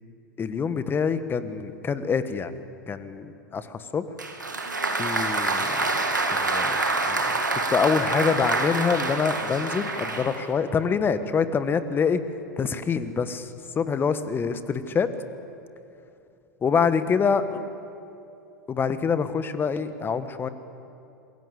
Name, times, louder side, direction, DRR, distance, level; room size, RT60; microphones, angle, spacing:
voice 1, 0.4-4.0 5.0-5.8 6.4-6.8 7.1-12.2 12.6-13.5 13.7-15.1 16.6-17.4 18.7-20.5, left 6 dB, 20° left, 12 dB, 1.5 m, -25 dB
Applause, 4.2-10.5, right 3 dB, 85° right, 2.5 m, -26 dB
27.0 x 22.0 x 8.4 m, 2.7 s
figure-of-eight pair, 90°, 10 cm